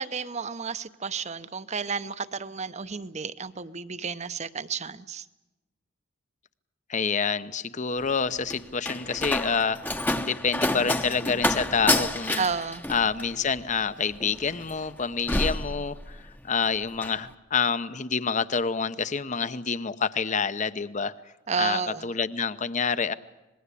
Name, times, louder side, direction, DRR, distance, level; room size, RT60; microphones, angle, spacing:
voice 1, 0.0-5.2 12.4-12.8 21.5-22.1, right 5 dB, 35° right, 14 dB, 0.8 m, -31 dB
voice 2, 6.9-9.8 10.2-12.4 12.9-21.1 21.6-23.1, left 5 dB, 35° left, 14 dB, 0.8 m, -27 dB
Slam, 8.0-16.4 16.7-17.2, left 1 dB, 10° left, 0.9 m, -29 dB
26.0 x 20.5 x 8.4 m, 1.0 s
head